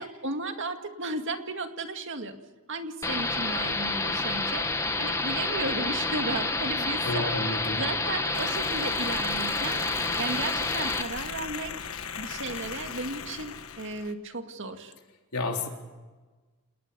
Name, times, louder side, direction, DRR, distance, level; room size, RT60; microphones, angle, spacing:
voice 1, 0.0-2.3 2.7-4.6 5.0-11.9 12.2-14.9, right 3 dB, 55° right, 6 dB, 2.1 m, -35 dB
sound 1, 3.0-11.0, left 3 dB, 15° left, 1.4 m, -29 dB
voice 2, 7.0-7.8 15.3-15.7, left 2 dB, 80° left, 2 dB, 3.8 m, -30 dB
sound 2, 8.3-14.1, left 6 dB, 65° left, 1.5 m, -38 dB
28.5 x 19.5 x 7.0 m, 1.3 s
head